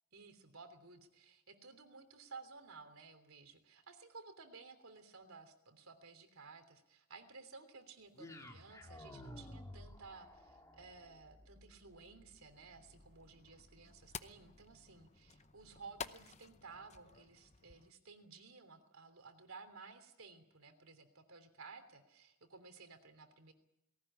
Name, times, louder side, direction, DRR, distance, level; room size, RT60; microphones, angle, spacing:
voice 1, 0.1-23.5, right 4 dB, 80° right, 8 dB, 3.1 m, -56 dB
sound 1, 8.1-16.4, left 1 dB, 15° left, 2.7 m, -56 dB
sound 2, 12.5-17.9, left 6 dB, 35° left, 0.8 m, -52 dB
19.0 x 18.0 x 10.0 m, 0.85 s
head